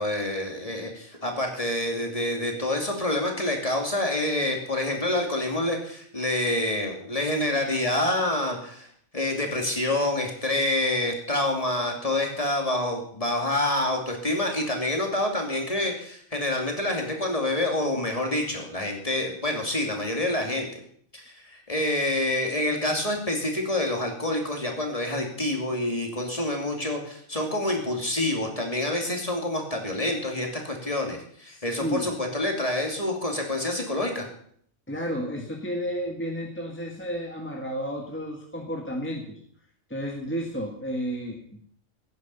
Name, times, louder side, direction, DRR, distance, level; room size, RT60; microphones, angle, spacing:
voice 1, 0.0-8.9 9.1-20.8 21.1-34.3, left 1 dB, 25° left, 2 dB, 2.7 m, -27 dB
voice 2, 31.5-32.1 34.9-39.4 39.9-41.7, equal, 10° left, 0 dB, 1.6 m, -32 dB
16.5 x 9.5 x 5.6 m, 0.63 s
omnidirectional pair, 1.3 m